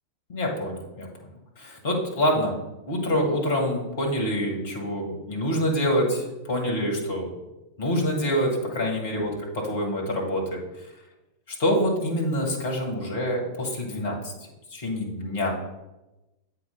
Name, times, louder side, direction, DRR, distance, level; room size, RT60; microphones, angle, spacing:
voice 1, 0.3-1.1 1.6-2.5 2.9-7.3 7.8-10.6 11.5-14.3 14.7-15.5, equal, 50° left, 0 dB, 1.8 m, -26 dB
8.1 x 2.9 x 5.3 m, 1.0 s
figure-of-eight pair, 90°, 0 cm